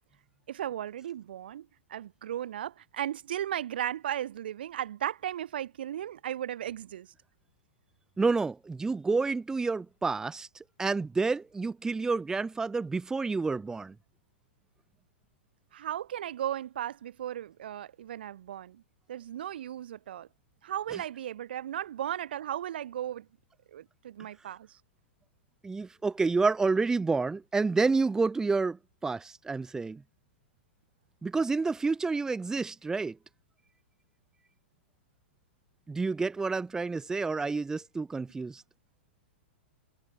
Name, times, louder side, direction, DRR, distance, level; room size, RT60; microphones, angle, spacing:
voice 1, 0.5-7.1 15.7-18.8 19.1-20.3 20.6-23.3 23.7-24.8, right 11 dB, 55° right, 5.8 m, -36 dB
voice 2, 8.2-13.9 20.9-21.0 25.6-30.0 31.2-33.2 35.9-38.6, right 4 dB, 10° right, 2.0 m, -29 dB
figure-of-eight pair, 100°, 6 cm